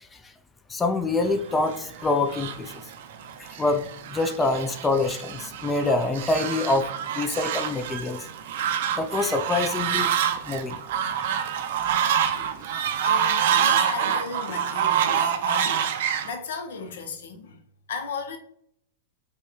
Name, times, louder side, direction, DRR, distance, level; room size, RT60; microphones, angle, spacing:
voice 1, 0.7-2.7 3.4-6.9 7.1-8.3 9.0-10.2 10.5-10.8 11.2-11.5, left 3 dB, 15° left, 0.3 m, -26 dB
Fowl, 1.5-16.3, right 9 dB, 65° right, 0.4 m, -27 dB
voice 2, 13.0-15.9 16.2-17.6 17.9-18.4, left 4 dB, 75° left, 0.6 m, -35 dB
4.5 x 2.1 x 3.0 m
hypercardioid pair, 120°, 0 cm